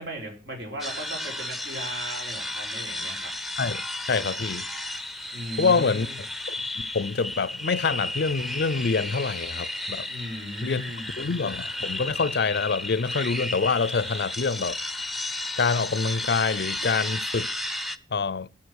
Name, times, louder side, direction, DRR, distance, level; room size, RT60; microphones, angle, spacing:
voice 1, 0.0-3.3 5.3-6.1 10.0-11.1, equal, 65° right, 5.3 m, -37 dB
sound 1, 0.8-18.0, left 1 dB, ahead, 0.7 m, -33 dB
voice 2, 4.1-4.7 5.6-6.1 6.5-10.1 10.6-10.8 11.2-15.1 15.6-17.5 18.1-18.5, left 4 dB, 60° left, 0.5 m, -26 dB
13.5 x 7.4 x 6.3 m
head